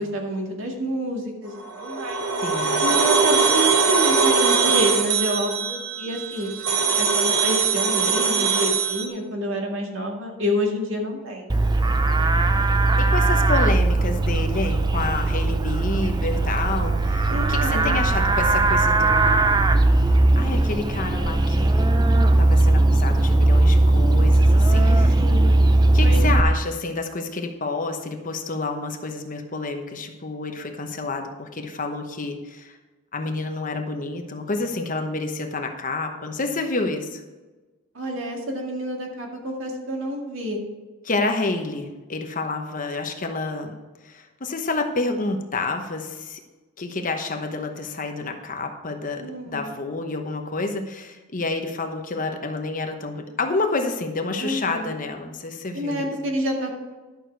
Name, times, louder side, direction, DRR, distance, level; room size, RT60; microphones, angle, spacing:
voice 1, 0.0-2.2 2.8-6.5 7.0-11.7 17.3-18.0 24.7-25.5 26.0-26.2 37.9-40.6 49.2-49.7 54.4-54.9 55.7-56.7, equal, 65° right, 0 dB, 2.1 m, -28 dB
sound 1, 1.6-9.1, right 5 dB, 85° right, 1.3 m, -21 dB
voice 2, 2.4-2.8 13.0-19.7 20.0-21.8 22.4-25.2 25.9-32.8 33.1-37.2 41.0-43.8 44.0-46.4 46.8-56.1, left 3 dB, 40° left, 5 dB, 1.0 m, -29 dB
Livestock farm animals working animals, 11.5-26.4, right 2 dB, 20° right, 0.5 m, -18 dB
11.5 x 6.5 x 4.6 m, 1.2 s
head